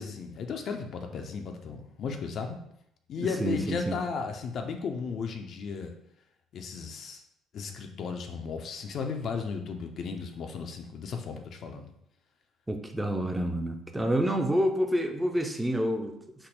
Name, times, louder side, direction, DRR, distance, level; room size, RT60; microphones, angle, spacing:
voice 1, 0.0-2.6 3.1-5.9 6.5-7.2 7.5-11.9, left 5 dB, 55° left, 4 dB, 0.4 m, -35 dB
voice 2, 3.2-3.9 12.7-16.1, equal, 10° right, 4 dB, 0.5 m, -28 dB
3.6 x 2.0 x 3.9 m, 0.74 s
hypercardioid pair, 55°, 0 cm